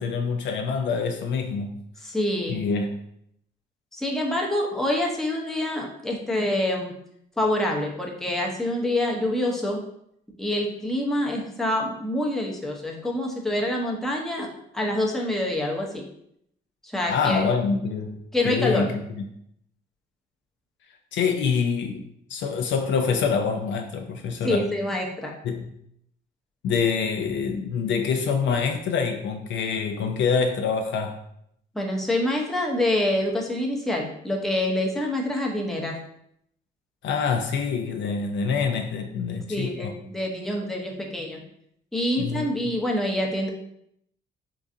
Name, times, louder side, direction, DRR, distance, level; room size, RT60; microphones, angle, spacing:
voice 1, 0.0-1.7 2.5-2.9 17.1-18.9 21.1-22.0 22.3-24.7 25.4-25.7 26.6-31.2 37.0-39.9 42.2-42.5, left 5 dB, 70° left, 4 dB, 0.4 m, -25 dB
voice 2, 2.0-2.6 3.9-6.9 7.4-9.8 10.4-14.5 14.7-16.1 16.8-17.5 18.3-18.9 24.4-25.3 31.7-36.0 39.5-41.4 41.9-43.5, left 1 dB, ahead, -1 dB, 0.6 m, -26 dB
3.8 x 2.5 x 2.5 m, 0.72 s
cardioid pair, 90°, 20 cm